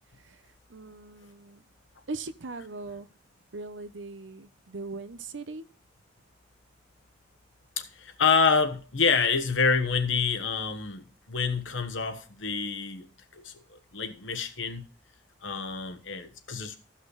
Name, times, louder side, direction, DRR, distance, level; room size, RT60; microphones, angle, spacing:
voice 1, 0.2-1.6 2.1-3.1 3.5-5.7, right 3 dB, 75° right, 0.8 m, -40 dB
voice 2, 7.8-13.1 13.3-13.5 13.9-14.8 15.4-16.8, left 5 dB, 90° left, 1.2 m, -27 dB
15.0 x 5.8 x 3.2 m
head